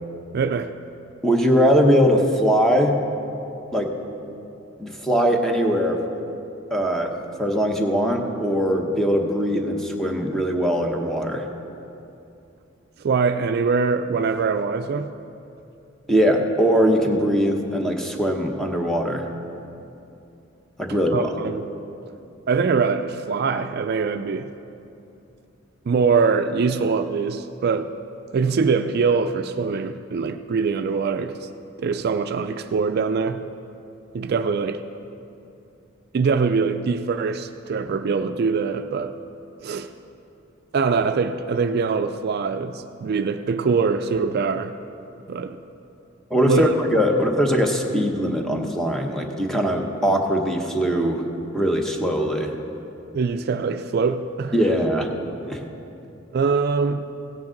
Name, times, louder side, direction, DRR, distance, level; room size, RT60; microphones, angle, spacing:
voice 1, 0.3-0.7 13.0-15.1 21.1-21.6 22.5-24.5 25.9-27.9 28.3-31.4 31.8-33.4 34.1-34.8 36.1-39.2 39.6-39.9 40.7-44.7 45.3-45.6 46.4-46.7 53.1-54.6 56.3-57.1, right 5 dB, 55° right, 9 dB, 0.3 m, -23 dB
voice 2, 1.2-3.0 3.7-4.0 4.8-6.0 6.7-11.4 16.1-19.2 20.8-21.3 46.3-51.2 51.5-52.5 54.5-55.1 55.4-55.6, equal, ahead, 2 dB, 0.9 m, -21 dB
16.5 x 8.7 x 3.9 m, 2.7 s
head